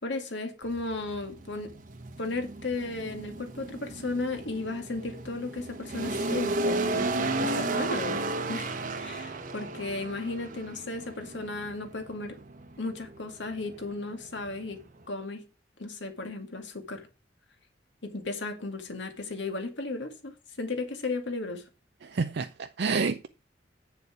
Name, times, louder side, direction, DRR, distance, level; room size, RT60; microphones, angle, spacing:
voice 1, 0.0-1.7 2.2-8.2 8.5-12.4 12.8-14.8 15.1-15.4 15.8-17.1 18.0-21.6, left 3 dB, 75° left, 2.1 m, -35 dB
sound 1, 0.6-15.1, right 2 dB, 45° right, 1.1 m, -34 dB
voice 2, 22.0-23.3, right 4 dB, 65° right, 0.5 m, -29 dB
8.2 x 6.9 x 4.8 m
head